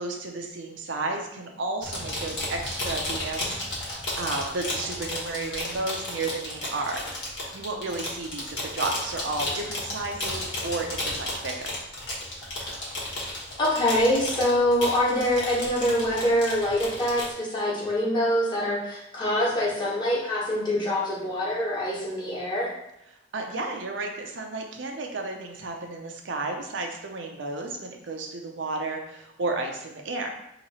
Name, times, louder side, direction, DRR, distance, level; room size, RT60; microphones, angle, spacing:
voice 1, 0.0-7.0 7.5-11.7 23.3-30.3, right 3 dB, 75° right, 3 dB, 0.6 m, -32 dB
sound 1, 1.8-17.3, left 1 dB, 70° left, 1.2 m, -33 dB
voice 2, 13.6-22.7, left 1 dB, 25° left, -6 dB, 1.1 m, -25 dB
3.0 x 2.8 x 4.1 m, 0.80 s
head